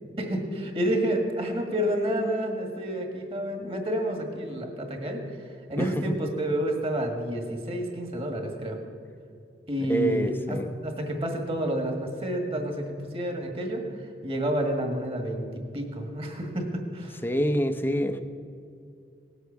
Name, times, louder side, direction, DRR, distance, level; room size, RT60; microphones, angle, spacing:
voice 1, 0.2-8.8 9.7-17.2, right 1 dB, 30° right, 3 dB, 1.8 m, -29 dB
voice 2, 9.9-10.6 17.2-18.2, equal, 10° left, 8 dB, 0.6 m, -26 dB
18.5 x 8.1 x 7.0 m, 2.5 s
head